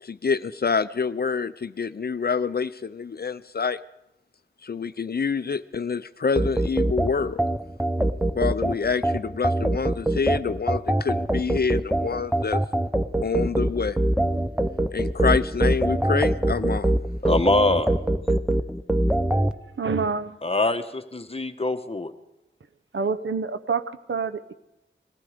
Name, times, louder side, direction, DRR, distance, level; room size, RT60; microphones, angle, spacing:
voice 1, 0.0-3.8 4.6-7.4 8.3-12.6 13.2-14.0 14.9-16.9, left 5 dB, 50° left, 14 dB, 0.5 m, -27 dB
sound 1, 6.4-19.5, right 1 dB, 5° right, 0.7 m, -23 dB
voice 2, 17.2-17.9 20.4-22.1, left 2 dB, 30° left, 8 dB, 1.1 m, -24 dB
voice 3, 19.8-20.4 22.9-24.5, right 5 dB, 70° right, 12 dB, 0.8 m, -27 dB
20.0 x 14.5 x 5.1 m, 0.92 s
cardioid pair, 50°, 21 cm